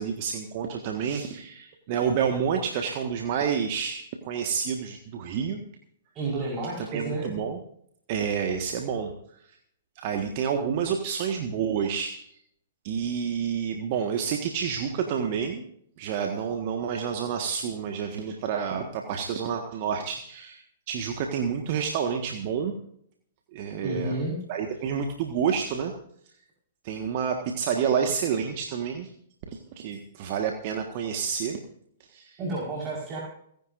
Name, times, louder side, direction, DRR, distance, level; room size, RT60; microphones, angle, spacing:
voice 1, 0.0-5.6 6.8-7.6 8.1-9.1 9.9-12.3 12.8-15.6 16.0-22.7 23.5-24.1 24.5-25.9 26.8-29.1 29.5-31.6 32.1-32.4, right 7 dB, 45° right, 3 dB, 1.6 m, -29 dB
voice 2, 6.1-7.3 23.8-24.4 32.4-33.2, right 2 dB, 25° right, -3 dB, 5.0 m, -31 dB
30.0 x 11.0 x 2.6 m, 0.69 s
figure-of-eight pair, 110°, 0 cm